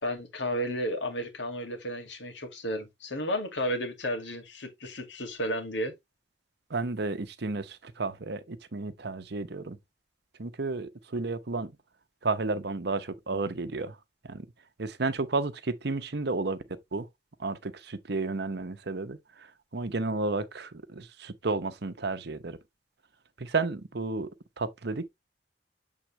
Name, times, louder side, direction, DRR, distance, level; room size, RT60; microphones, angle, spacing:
voice 1, 0.0-5.9, equal, 85° left, 2.3 m, -33 dB
voice 2, 6.7-9.8 10.4-11.7 12.2-14.0 14.2-14.5 14.8-16.6 16.9-17.1 17.4-19.5 19.7-22.6 23.4-24.3 24.6-25.1, right 3 dB, 65° right, 0.9 m, -32 dB
7.6 x 3.8 x 3.2 m
head